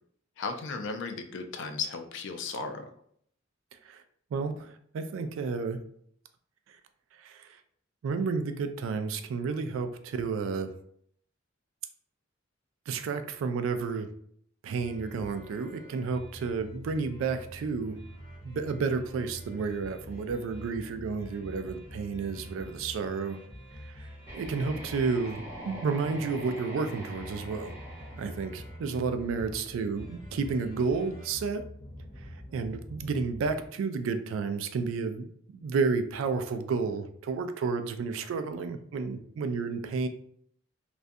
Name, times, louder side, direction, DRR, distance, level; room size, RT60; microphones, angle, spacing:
voice 1, 0.4-2.8, left 4 dB, 65° left, 7 dB, 0.4 m, -35 dB
voice 2, 4.3-5.8 7.2-7.5 8.0-10.7 12.9-14.1 14.6-18.0 18.4-23.4 23.8-27.7 28.1-31.6 32.5-35.3 35.5-40.1, right 4 dB, 70° right, 8 dB, 0.3 m, -31 dB
sound 1, 14.8-33.7, equal, 25° left, 0.6 m, -46 dB
sound 2, 24.2-29.2, right 1 dB, 15° right, 0.7 m, -44 dB
2.4 x 2.2 x 2.6 m, 0.65 s
head